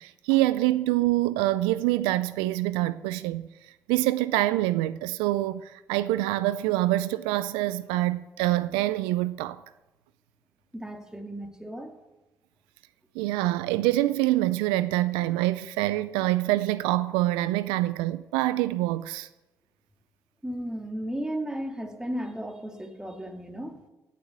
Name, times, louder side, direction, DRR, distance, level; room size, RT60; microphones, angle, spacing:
voice 1, 0.0-3.5 3.9-9.6 13.2-19.3, right 16 dB, 85° right, 0.4 m, -25 dB
voice 2, 10.7-11.9 20.4-23.8, equal, 10° right, 2.5 m, -34 dB
16.0 x 7.4 x 8.3 m
hypercardioid pair, 45°, 8 cm